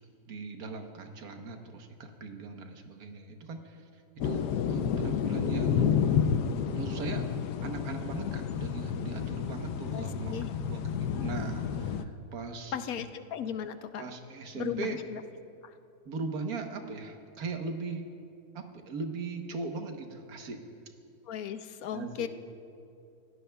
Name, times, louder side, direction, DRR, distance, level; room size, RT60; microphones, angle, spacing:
voice 1, 0.3-3.8 4.2-6.0 6.7-7.2 7.6-13.1 14.0-15.0 16.0-18.0 18.5-20.6 21.9-22.3, right 4 dB, 70° right, 4 dB, 1.6 m, -39 dB
sound 1, 4.2-12.0, left 7 dB, 90° left, 1.2 m, -30 dB
voice 2, 9.9-10.5 12.7-14.0 14.5-15.2 15.6-15.7 21.3-22.3, left 9 dB, 70° left, 10 dB, 1.1 m, -36 dB
29.5 x 16.5 x 2.3 m, 2.6 s
omnidirectional pair, 1.7 m